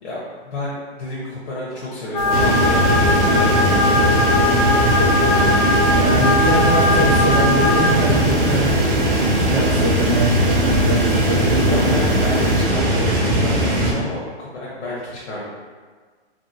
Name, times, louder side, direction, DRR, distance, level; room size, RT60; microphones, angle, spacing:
voice 1, 0.0-4.0 5.9-6.8 11.7-15.5, left 2 dB, 85° left, -7 dB, 0.9 m, -31 dB
sound 1, 2.1-7.9, left 2 dB, 30° left, 0.5 m, -19 dB
sound 2, 2.2-12.7, equal, 85° right, 0.8 m, -30 dB
sound 3, 2.3-13.9, right 1 dB, 50° right, 0.8 m, -19 dB
voice 2, 5.0-5.6 5.9-8.8 9.4-12.0, right 1 dB, 20° right, -6 dB, 0.4 m, -23 dB
2.8 x 2.7 x 2.7 m, 1.5 s
hypercardioid pair, 150°, 34 cm